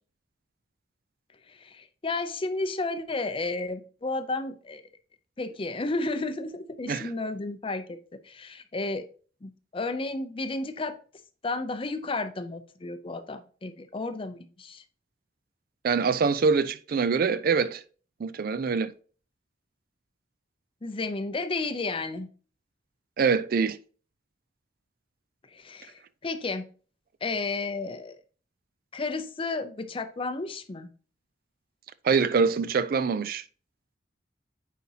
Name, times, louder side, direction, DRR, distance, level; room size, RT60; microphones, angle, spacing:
voice 1, 1.5-4.8 5.4-9.1 9.4-11.0 11.4-14.8 20.8-22.3 25.5-26.7 27.2-28.2 28.9-30.9, left 3 dB, 30° left, 0.5 m, -32 dB
voice 2, 15.8-17.8 18.2-18.9 23.2-23.8 32.0-33.4, right 5 dB, 50° right, 0.4 m, -24 dB
9.2 x 4.2 x 2.8 m
head